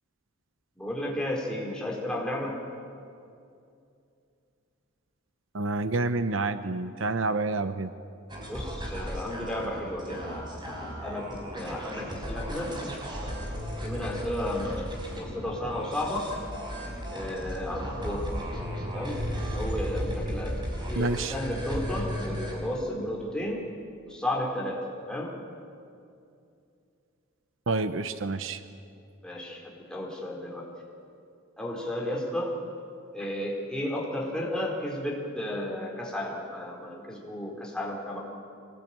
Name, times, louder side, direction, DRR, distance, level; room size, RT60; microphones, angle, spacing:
voice 1, 0.8-2.6 8.5-12.7 13.8-16.3 17.1-18.3 18.9-19.3 19.5-20.6 20.9-23.6 24.0-25.4 29.2-30.7 31.6-32.6 33.1-38.2, left 1 dB, 5° left, -3 dB, 4.4 m, -33 dB
voice 2, 5.5-7.9 21.0-21.3 27.7-28.6, right 3 dB, 70° right, 11 dB, 0.8 m, -28 dB
sound 1, 8.3-22.5, equal, 25° right, 5.1 m, -35 dB
24.5 x 19.5 x 9.0 m, 2.5 s
head